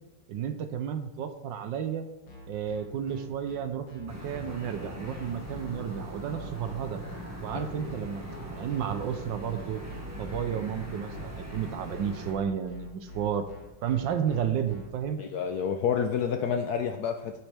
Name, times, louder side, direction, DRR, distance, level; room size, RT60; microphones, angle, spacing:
voice 1, 0.3-2.1 2.5-7.0 7.4-8.2 8.5-9.8 10.1-13.5 13.8-15.2, right 8 dB, 70° right, 8 dB, 1.3 m, -32 dB
sound 1, 2.3-14.9, left 1 dB, 60° left, 2.5 m, -46 dB
sound 2, 4.1-12.3, right 1 dB, 10° right, 1.3 m, -41 dB
voice 2, 15.2-17.3, left 7 dB, 80° left, 5 dB, 0.8 m, -28 dB
9.7 x 9.1 x 3.4 m, 1.0 s
omnidirectional pair, 2.3 m